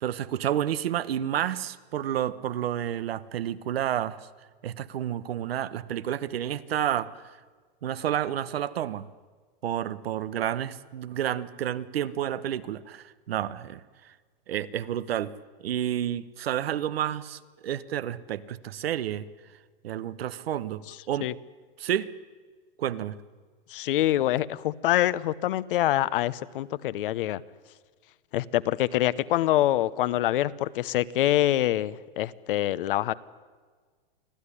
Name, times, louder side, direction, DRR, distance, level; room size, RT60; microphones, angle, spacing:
voice 1, 0.0-4.3 4.6-7.2 7.8-9.1 9.6-13.8 14.5-15.3 15.6-19.2 19.8-20.8 21.1-21.3 21.8-22.1 22.8-23.2, right 11 dB, 85° right, 15 dB, 1.2 m, -30 dB
voice 2, 23.7-27.4 28.3-33.1, left 14 dB, 65° left, 17 dB, 0.9 m, -25 dB
25.5 x 15.0 x 9.9 m, 1.5 s
supercardioid pair, 150°, 29 cm